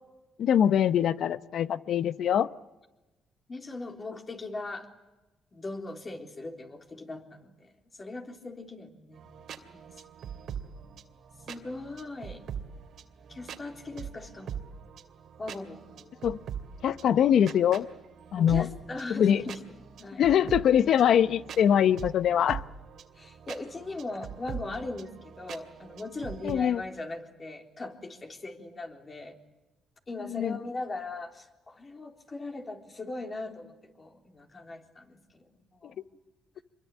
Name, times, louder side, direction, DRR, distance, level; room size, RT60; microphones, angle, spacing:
voice 1, 0.4-2.5 16.2-16.4 16.8-17.9 18.3-18.7 19.1-19.4 20.2-22.6 26.4-26.8 30.3-30.6, left 9 dB, 70° left, 15 dB, 0.9 m, -23 dB
voice 2, 3.5-4.9 5.5-9.3 9.7-10.0 11.5-12.4 13.3-14.6 15.4-16.3 18.4-19.6 20.0-20.2 23.1-29.4 30.1-36.0, left 2 dB, 30° left, 4 dB, 3.7 m, -39 dB
sound 1, 9.1-26.5, right 8 dB, 70° right, 2.5 m, -43 dB
26.0 x 22.5 x 8.5 m, 1.1 s
cardioid pair, 90°, 0 cm